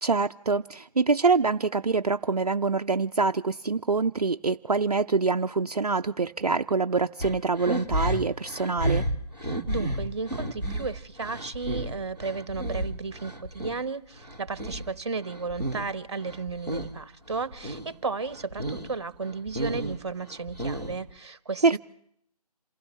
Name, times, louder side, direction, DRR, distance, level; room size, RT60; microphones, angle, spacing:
voice 1, 0.0-9.0 21.6-21.8, right 4 dB, 70° right, 6 dB, 0.6 m, -25 dB
sound 1, 7.2-13.8 14.2-15.9 16.2-17.0 17.3-17.9 18.3-18.9 19.2-21.1, right 1 dB, 5° left, 0.6 m, -32 dB
voice 2, 9.4-21.8, right 4 dB, 45° right, 13 dB, 1.1 m, -34 dB
28.0 x 16.5 x 3.1 m, 0.70 s
figure-of-eight pair, 155°, 20 cm